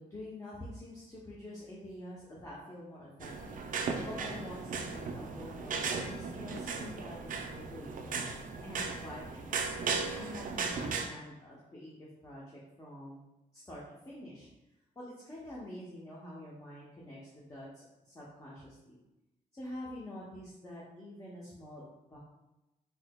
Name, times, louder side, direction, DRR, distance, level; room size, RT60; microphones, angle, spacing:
voice 1, 0.0-3.6 4.0-9.8 10.2-13.2 13.5-14.5 15.0-19.0 19.5-22.2, left 1 dB, 25° left, -6 dB, 0.7 m, -47 dB
sound 1, 3.2-11.1, right 4 dB, 65° right, 0.4 m, -36 dB
4.2 x 2.8 x 2.2 m, 0.96 s
wide cardioid pair, 125°, 15 cm